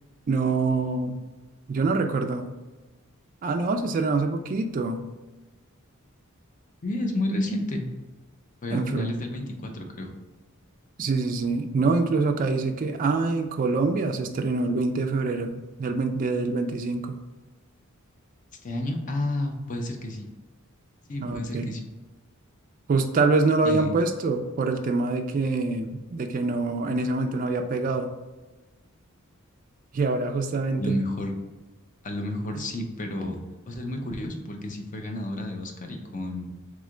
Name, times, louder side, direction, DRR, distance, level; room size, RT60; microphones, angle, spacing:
voice 1, 0.3-1.2 1.7-2.5 3.4-5.1 8.7-9.1 11.0-17.2 21.2-21.7 22.9-28.1 29.9-31.0 32.5-32.6, right 3 dB, 40° right, 5 dB, 0.3 m, -25 dB
voice 2, 6.8-7.9 8.6-10.2 18.6-20.3 21.1-21.9 23.6-23.9 30.7-31.3 32.0-36.5, left 1 dB, 35° left, 3 dB, 0.6 m, -31 dB
3.6 x 3.2 x 3.7 m, 1.2 s
head